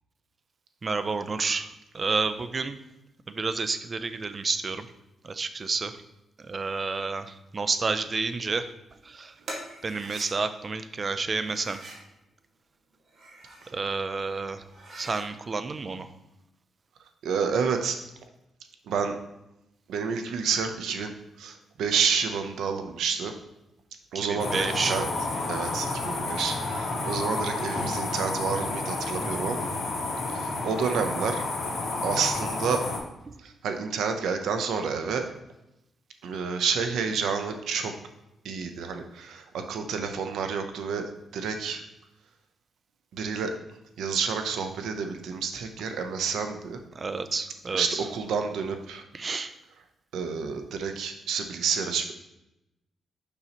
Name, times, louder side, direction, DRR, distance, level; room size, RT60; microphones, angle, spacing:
voice 1, 0.8-1.7 1.9-2.8 3.3-4.9 5.2-5.9 6.4-8.6 9.1-9.3 9.8-11.8 13.7-14.6 14.9-16.1 24.1-25.0 33.3-33.4 47.0-48.1 49.1-49.5, right 4 dB, 35° right, 11 dB, 0.5 m, -30 dB
sound 1, 9.4-10.3 11.4-12.1 13.0-13.7 14.2-14.3 14.6-15.3, right 1 dB, 65° right, 1.7 m, -42 dB
voice 2, 17.2-18.0 18.9-19.2 19.9-21.1 21.4-23.3 24.1-25.1 25.5-29.7 30.3-31.5 32.0-32.8 33.4-35.2 36.2-37.9 38.4-41.0 41.3-41.8 43.1-43.5 44.0-46.8 47.7-49.4 50.1-52.1, right 6 dB, 85° right, 6 dB, 0.7 m, -29 dB
sound 2, 24.4-33.0, left 2 dB, 75° left, 2.2 m, -30 dB
6.9 x 5.5 x 2.9 m, 0.90 s
cardioid pair, 95°, 0 cm